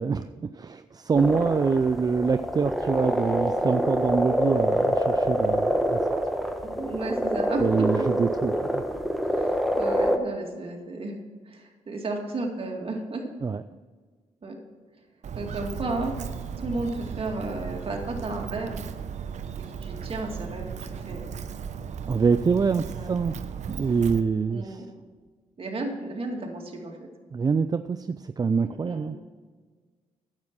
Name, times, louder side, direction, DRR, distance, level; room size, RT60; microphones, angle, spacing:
voice 1, 0.0-6.0 7.6-8.8 13.4-13.6 22.0-23.4 23.7-24.9 27.3-29.2, right 5 dB, 30° right, 11 dB, 0.4 m, -25 dB
sound 1, 1.1-10.2, equal, ahead, 1.2 m, -26 dB
voice 2, 6.6-8.0 9.3-11.2 11.5-13.3 14.4-14.6 15.3-16.1 16.6-18.8 19.8-21.3 22.9-23.2 24.5-24.9 25.6-27.1 28.7-29.2, right 2 dB, 45° right, 1 dB, 2.2 m, -33 dB
Walk footsteps, 15.2-24.2, right 7 dB, 60° right, 0.8 m, -36 dB
9.5 x 7.5 x 6.0 m, 1.5 s
supercardioid pair, 60°, 13 cm